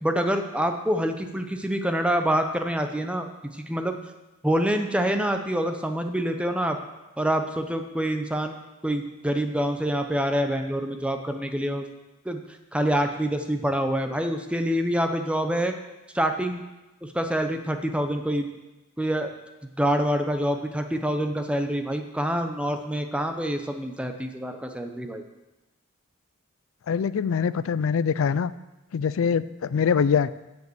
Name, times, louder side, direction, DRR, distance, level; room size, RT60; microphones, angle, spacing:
voice 1, 0.0-3.3 3.5-4.0 4.4-6.8 7.2-8.6 8.8-11.8 12.2-12.4 12.7-15.7 16.1-16.6 17.0-18.5 19.0-19.3 19.8-25.2, equal, 5° right, 6 dB, 0.7 m, -26 dB
voice 2, 26.9-28.5 28.9-30.3, left 6 dB, 70° left, 16 dB, 0.4 m, -23 dB
9.6 x 5.3 x 7.8 m, 1.0 s
head